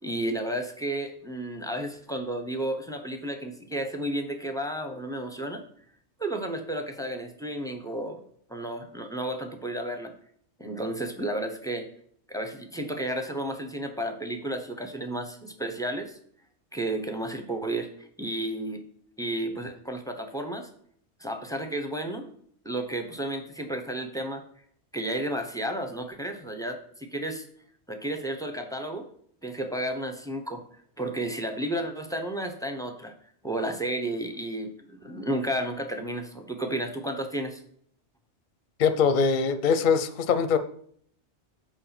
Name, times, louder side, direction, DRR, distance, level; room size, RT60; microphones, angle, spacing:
voice 1, 0.0-5.6 6.2-8.2 8.5-10.1 10.6-11.9 12.3-16.2 16.7-17.9 18.2-18.8 19.2-20.7 21.2-22.3 22.6-24.4 24.9-27.5 27.9-29.0 29.4-30.6 31.0-33.1 33.4-37.6, right 1 dB, 5° left, 6 dB, 0.7 m, -32 dB
voice 2, 38.8-40.6, left 6 dB, 50° left, 11 dB, 0.7 m, -22 dB
7.0 x 4.9 x 5.9 m, 0.62 s
omnidirectional pair, 1.2 m